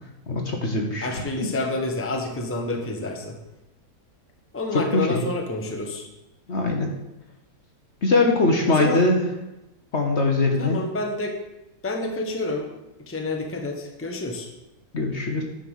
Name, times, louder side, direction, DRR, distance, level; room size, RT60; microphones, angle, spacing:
voice 1, 0.3-1.2 4.7-5.2 6.5-6.9 8.0-9.2 9.9-10.8 14.9-15.4, left 2 dB, 45° left, 2 dB, 1.2 m, -22 dB
voice 2, 1.0-3.3 4.5-6.1 8.8-9.0 10.6-11.3 11.8-12.7 13.1-14.5, left 2 dB, 10° left, 2 dB, 1.0 m, -28 dB
10.0 x 5.5 x 6.4 m, 0.96 s
omnidirectional pair, 1.8 m